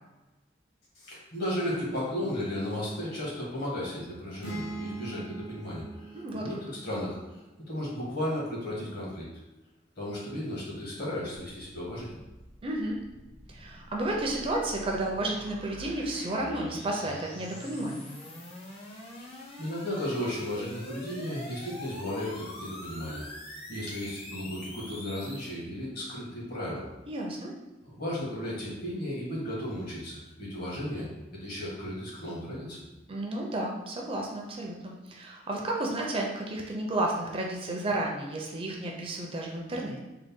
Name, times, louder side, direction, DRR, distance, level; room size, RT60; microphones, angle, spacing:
voice 1, 0.9-7.4 7.7-9.3 10.0-12.2 19.2-23.3 23.7-26.9 27.9-31.1 31.3-32.8, left 1 dB, 55° left, -5 dB, 1.3 m, -35 dB
sound 1, 4.4-8.2, right 2 dB, 90° left, 0.9 m, -42 dB
voice 2, 6.1-6.5 12.6-13.0 13.5-18.2 27.1-27.5 33.1-40.0, right 1 dB, 30° right, -1 dB, 0.4 m, -32 dB
sound 2, 12.2-25.5, left 1 dB, 30° left, 0.6 m, -45 dB
3.8 x 2.1 x 3.5 m, 1.1 s
head